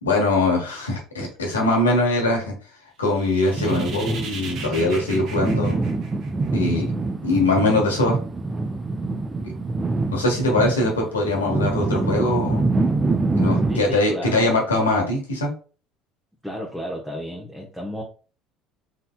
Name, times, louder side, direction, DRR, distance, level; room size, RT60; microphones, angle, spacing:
voice 1, 0.0-2.5 3.0-5.8 6.5-6.9 7.2-8.2 10.1-12.6 13.4-15.5, left 2 dB, 85° left, 0 dB, 1.3 m, -22 dB
sound 1, 3.1-6.7, right 5 dB, 55° right, 0.9 m, -38 dB
sound 2, 3.6-13.8, right 3 dB, 20° right, 0.5 m, -25 dB
voice 2, 13.7-14.5 16.4-18.0, equal, ahead, -2 dB, 1.0 m, -32 dB
4.2 x 3.8 x 2.2 m, 0.37 s
hypercardioid pair, 60°, 0 cm